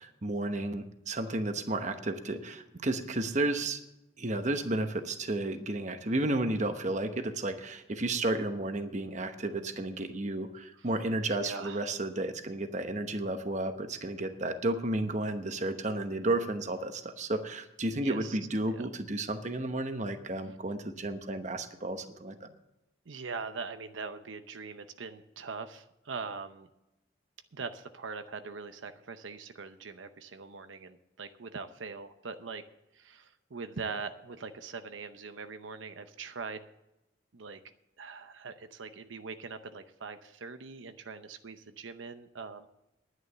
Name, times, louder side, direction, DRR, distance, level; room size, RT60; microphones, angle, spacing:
voice 1, 0.0-3.8 4.2-22.5, right 2 dB, 40° right, 8 dB, 1.0 m, -32 dB
voice 2, 11.3-11.9 18.0-18.4 18.7-18.9 23.1-26.7 27.5-32.6 32.9-36.6 37.3-37.6 38.0-42.7, right 4 dB, 90° right, 9 dB, 0.7 m, -42 dB
11.0 x 9.8 x 6.7 m, 0.90 s
head